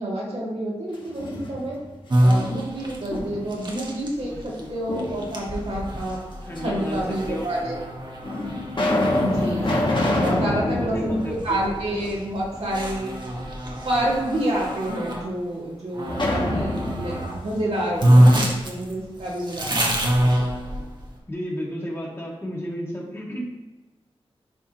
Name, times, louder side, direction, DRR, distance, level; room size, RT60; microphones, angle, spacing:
voice 1, 0.0-1.8 2.2-6.2 6.6-7.7 9.2-9.9 10.2-13.1 13.8-20.0, right 1 dB, 75° right, -5 dB, 2.1 m, -28 dB
sound 1, 0.9-1.9 2.4-3.6 4.9-5.7 6.6-6.7 7.5-7.6 8.2-12.3 12.7-12.8 16.1-18.9, left 1 dB, 50° left, 1.5 m, -27 dB
sound 2, 2.1-15.3 15.9-17.4 17.7-17.8 18.0-21.1, right 1 dB, 45° right, 1.3 m, -25 dB
voice 2, 4.2-4.7 6.4-7.5 10.3-11.6 21.3-23.4, equal, 25° left, -4 dB, 1.9 m, -33 dB
10.5 x 3.7 x 3.0 m, 1.1 s
cardioid pair, 65°, 11 cm